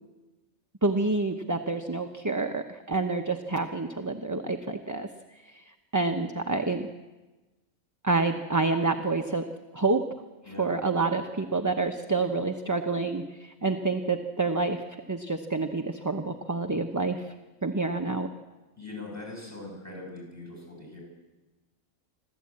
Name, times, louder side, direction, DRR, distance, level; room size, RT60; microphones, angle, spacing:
voice 1, 0.8-5.1 5.9-6.9 8.0-9.4 9.7-10.0 10.6-14.8 15.1-17.2 17.6-18.3, right 3 dB, 15° right, 5 dB, 0.8 m, -28 dB
voice 2, 18.8-21.0, left 2 dB, 10° left, 0 dB, 8.0 m, -41 dB
26.5 x 13.5 x 8.7 m, 1.2 s
omnidirectional pair, 1.4 m